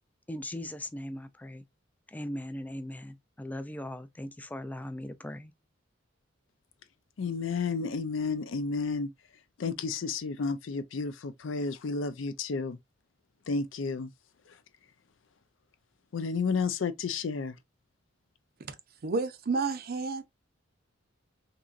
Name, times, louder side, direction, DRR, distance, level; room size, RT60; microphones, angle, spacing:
voice 1, 0.3-1.6 2.1-5.5, left 1 dB, 10° left, 0.3 m, -39 dB
voice 2, 7.2-9.1 9.6-12.8 13.5-14.1 14.5-14.6 16.1-17.6, left 4 dB, 75° left, 0.5 m, -31 dB
voice 3, 19.0-20.2, right 4 dB, 50° right, 0.5 m, -30 dB
3.7 x 2.9 x 2.4 m
head